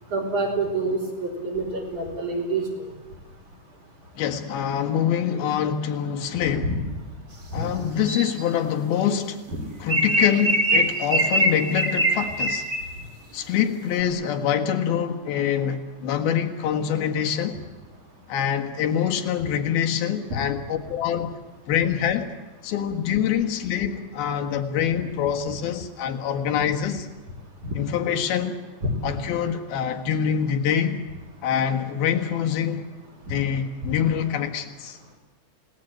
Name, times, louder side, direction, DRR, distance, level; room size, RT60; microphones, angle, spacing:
voice 1, 0.1-2.7 6.4-6.7 7.5-7.7 9.5-9.6 27.6-27.7 28.8-28.9, right 2 dB, 50° right, 1 dB, 4.9 m, -27 dB
voice 2, 4.2-6.7 7.5-9.4 9.8-12.7 13.3-17.6 18.3-21.3 21.7-22.3 22.6-27.1 27.8-28.6 29.0-31.0 31.4-32.9 33.3-35.0, left 8 dB, 70° left, 5 dB, 3.3 m, -25 dB
sound 1, 8.1-8.4 9.9-13.0, right 1 dB, 25° right, 1.9 m, -22 dB
29.5 x 18.0 x 9.1 m, 1.2 s
omnidirectional pair, 4.8 m